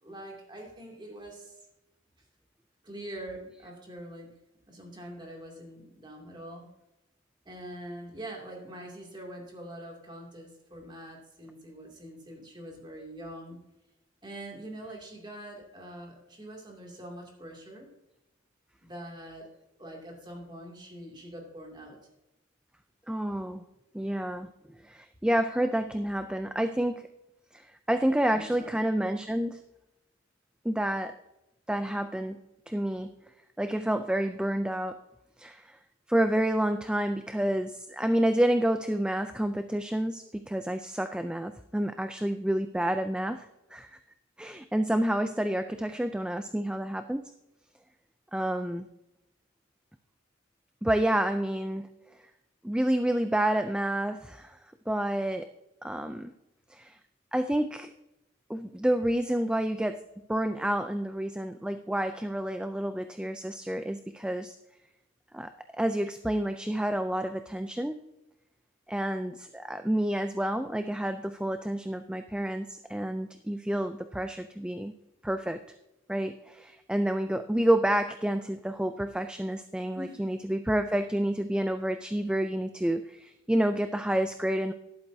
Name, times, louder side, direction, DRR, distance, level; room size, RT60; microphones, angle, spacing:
voice 1, 0.0-1.6 2.8-4.3 4.7-6.7 7.4-13.6 14.2-17.9 18.8-19.5 19.8-22.0 28.3-28.8 80.0-80.3, right 1 dB, 20° right, 0 dB, 2.5 m, -44 dB
voice 2, 23.1-23.6 23.9-24.5 24.8-27.1 27.5-29.6 30.6-31.2 31.7-32.4 32.7-33.1 33.6-35.0 35.4-35.8 36.1-44.0 44.4-47.2 48.3-48.9 50.8-51.9 52.6-54.6 54.9-55.5 55.8-56.3 56.7-57.0 57.3-57.9 58.5-60.0 60.3-64.6 65.3-68.0 68.9-74.9 75.2-75.6 76.1-84.7, right 1 dB, 5° right, 9 dB, 0.3 m, -29 dB
12.5 x 11.0 x 2.7 m, 0.92 s
head